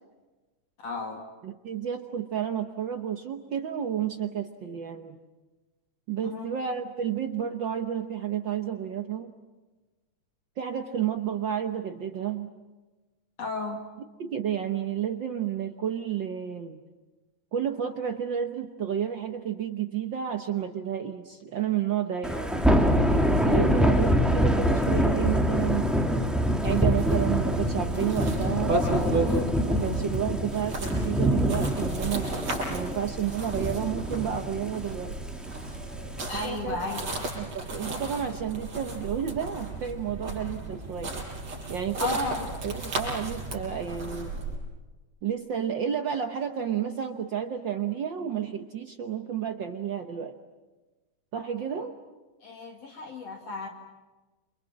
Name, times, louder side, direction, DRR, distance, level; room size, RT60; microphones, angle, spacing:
voice 1, 0.8-1.2 6.2-6.5 13.4-13.8 36.3-37.0 42.0-42.5 52.4-53.7, left 3 dB, 55° left, 3 dB, 3.0 m, -33 dB
voice 2, 1.4-5.2 6.1-9.3 10.6-12.5 14.2-16.8 17.5-22.7 23.4-26.2 26.6-29.3 29.6-32.3 32.7-35.2 36.4-36.8 37.4-41.1 41.7-42.3 42.6-44.3 45.2-50.4 51.3-52.0, right 9 dB, 80° right, 6 dB, 1.0 m, -31 dB
Thunder / Rain, 22.2-36.2, equal, ahead, 1.5 m, -25 dB
sound 1, 26.6-44.6, right 2 dB, 55° right, 6.8 m, -34 dB
29.5 x 26.5 x 7.4 m, 1.2 s
omnidirectional pair, 3.6 m